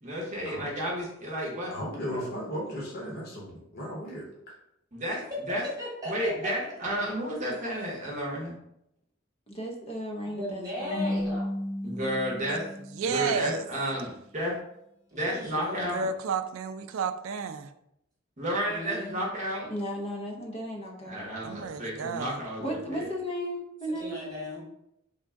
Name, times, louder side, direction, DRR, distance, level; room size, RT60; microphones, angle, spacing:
voice 1, 0.0-2.2 4.9-5.2 5.5-5.6 6.1-8.5 11.8-12.6 13.0-14.5 15.1-16.1 18.4-19.7 21.0-23.1, equal, 35° right, 0.8 m, -32 dB
voice 2, 1.7-4.3, equal, 50° left, 1.0 m, -36 dB
voice 3, 5.6-6.5 10.2-11.4 15.1-16.0 18.7-19.2 23.9-24.6, left 1 dB, 20° right, 1.1 m, -36 dB
voice 4, 9.5-11.1 19.7-21.3 22.6-24.1, equal, 30° left, 0.6 m, -35 dB
Marimba xylophone / Wood, 10.9-13.6, left 1 dB, 80° left, 1.3 m, -34 dB
voice 5, 12.9-13.6 15.9-17.7 21.4-22.4, right 5 dB, 80° right, 0.3 m, -31 dB
3.6 x 2.2 x 3.5 m
head